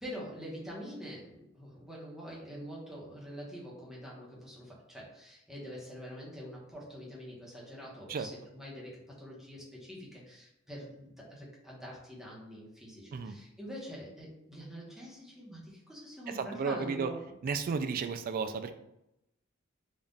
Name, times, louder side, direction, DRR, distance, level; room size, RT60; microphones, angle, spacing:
voice 1, 0.0-17.3, equal, ahead, -5 dB, 0.9 m, -45 dB
voice 2, 16.4-17.1 17.4-18.7, right 5 dB, 45° right, 9 dB, 0.3 m, -33 dB
3.6 x 2.4 x 3.9 m, 0.84 s
head